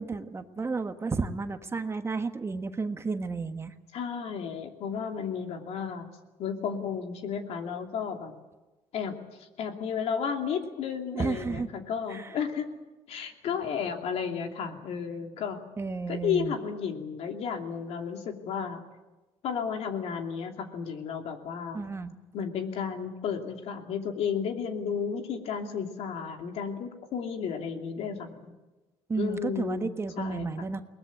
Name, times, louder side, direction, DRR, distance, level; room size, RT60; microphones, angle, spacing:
voice 1, 0.0-3.7 11.1-11.7 12.1-12.3 15.8-16.5 21.7-22.1 29.1-30.8, right 4 dB, 20° right, 8 dB, 1.4 m, -32 dB
voice 2, 3.9-6.1 6.4-8.3 8.9-12.7 13.1-15.6 16.1-18.8 19.4-21.8 22.3-28.6 29.2-29.9 30.2-30.7, left 7 dB, 65° left, 4 dB, 2.8 m, -33 dB
22.0 x 19.5 x 8.4 m, 1.1 s
cardioid pair, 100°, 12 cm